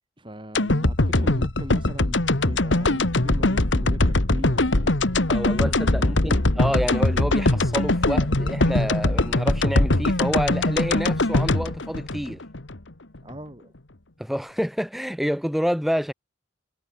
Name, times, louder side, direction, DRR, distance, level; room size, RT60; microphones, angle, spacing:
voice 1, 0.2-5.0 5.5-6.6 13.2-13.7, equal, 25° right, 4.4 m, -39 dB
sound 1, 0.5-12.8 13.1-13.2, left 2 dB, 75° left, 1.9 m, -21 dB
voice 2, 5.3-12.4 14.2-16.1, equal, ahead, 0.6 m, -28 dB
head